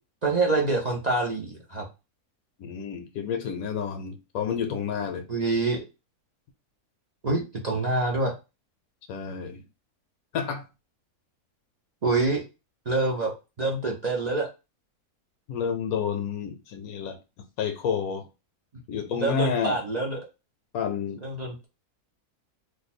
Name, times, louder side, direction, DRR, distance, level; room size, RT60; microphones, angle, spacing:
voice 1, 0.2-1.9 5.3-5.8 7.2-8.3 12.0-12.4 12.9-13.3 13.6-14.5 19.2-20.2 21.2-21.7, right 3 dB, 55° right, 0.4 m, -26 dB
voice 2, 2.6-5.3 9.1-9.6 10.3-10.6 15.5-17.2 17.6-18.3 18.9-19.8 20.7-21.2, left 7 dB, 75° left, 1.0 m, -29 dB
2.6 x 2.2 x 4.1 m
omnidirectional pair, 1.6 m